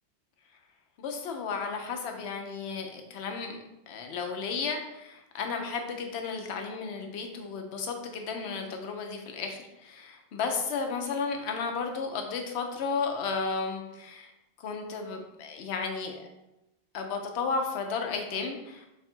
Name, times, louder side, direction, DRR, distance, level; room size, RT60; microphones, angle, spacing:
voice 1, 1.0-3.6 3.9-14.3 14.6-16.3 16.9-18.9, left 5 dB, 70° left, 4 dB, 0.9 m, -33 dB
3.2 x 2.4 x 4.3 m, 0.92 s
omnidirectional pair, 1.2 m